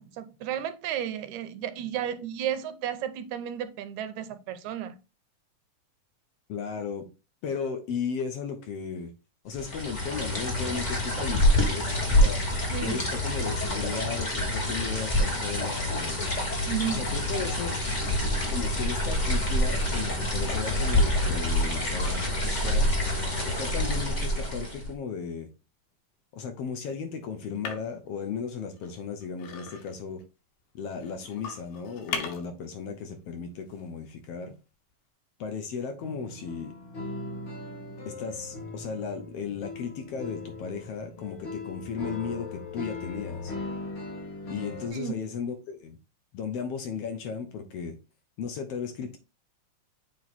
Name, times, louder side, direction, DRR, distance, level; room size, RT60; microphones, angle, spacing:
voice 1, 0.0-5.0 12.7-13.0 16.7-17.1 44.9-45.1, right 9 dB, 85° right, 2.1 m, -33 dB
voice 2, 6.5-7.1 7.4-9.1 9.4-12.4 12.8-16.2 16.9-17.8 18.5-22.9 23.4-25.5 26.3-30.2 30.7-34.5 35.4-36.7 38.0-43.5 44.4-46.0 46.3-47.9 48.4-49.2, left 6 dB, 70° left, 1.6 m, -35 dB
sound 1, 9.5-24.9, left 1 dB, 25° left, 0.9 m, -27 dB
sound 2, 16.6-20.0 20.5-21.1 21.9-22.5 23.6-25.3 27.4-28.1 28.6-30.2 30.9-32.6 32.9-33.0 33.7-33.9 34.4-34.5, left 6 dB, 85° left, 2.5 m, -42 dB
sound 3, 36.0-44.9, left 3 dB, 45° left, 2.0 m, -39 dB
7.6 x 3.0 x 4.1 m
omnidirectional pair, 3.3 m